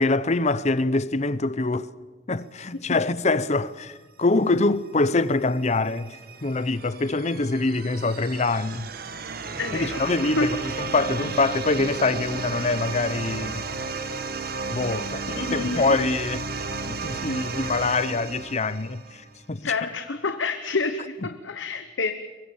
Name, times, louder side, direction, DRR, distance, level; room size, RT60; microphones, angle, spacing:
voice 1, 0.0-1.9 2.3-8.9 9.7-10.6 10.9-13.6 14.7-16.4 16.9-19.2 19.5-19.7, left 3 dB, 40° left, 0.7 m, -24 dB
sound 1, 5.5-19.3, right 4 dB, 55° right, 1.6 m, -33 dB
voice 2, 9.6-10.6 15.3-15.9 19.6-22.1, left 3 dB, 80° left, 1.1 m, -28 dB
24.0 x 21.0 x 7.2 m
head